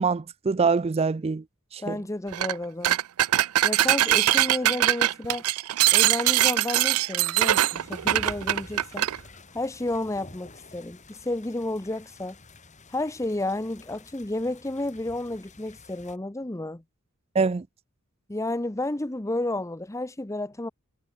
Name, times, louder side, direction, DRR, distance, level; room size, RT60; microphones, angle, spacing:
voice 1, 0.0-1.4 1.7-2.0 17.3-17.6, right 4 dB, 30° right, 0.4 m, -24 dB
voice 2, 1.8-3.0 3.6-5.5 5.9-9.1 9.5-12.4 12.9-16.8 18.3-20.7, left 2 dB, 15° left, 0.7 m, -31 dB
sound 1, 2.3-2.5 2.8-9.2, right 13 dB, 85° right, 0.4 m, -22 dB
sound 2, 7.7-16.2, left 2 dB, 35° left, 3.9 m, -49 dB
head